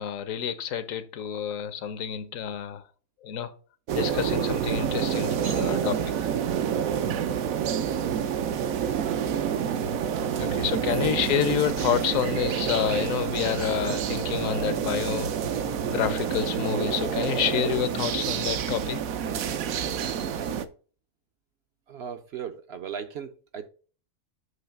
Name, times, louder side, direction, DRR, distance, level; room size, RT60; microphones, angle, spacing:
voice 1, 0.0-2.8 3.2-3.5 4.0-6.0 10.4-15.3 15.9-19.0, left 9 dB, 75° left, 1.1 m, -28 dB
sound 1, 3.9-20.7, right 8 dB, 80° right, 1.1 m, -28 dB
voice 2, 10.8-11.2 21.9-23.7, right 8 dB, 60° right, 0.7 m, -37 dB
7.9 x 3.0 x 5.7 m
omnidirectional pair, 1.4 m